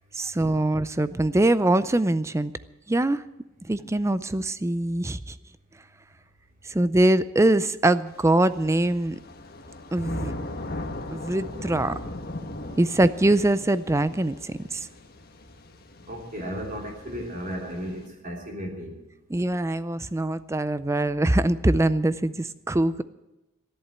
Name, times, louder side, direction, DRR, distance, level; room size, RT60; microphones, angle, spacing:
voice 1, 0.1-2.5 2.9-3.2 3.7-5.4 6.6-9.2 9.9-10.3 11.1-12.0 12.8-14.9 19.3-23.0, right 1 dB, 15° right, 15 dB, 0.4 m, -23 dB
Thunder / Rain, 8.1-18.0, left 1 dB, 50° left, 1.5 m, -39 dB
voice 2, 16.1-19.0, equal, 40° right, 0 dB, 3.3 m, -34 dB
13.5 x 11.5 x 8.1 m, 0.99 s
head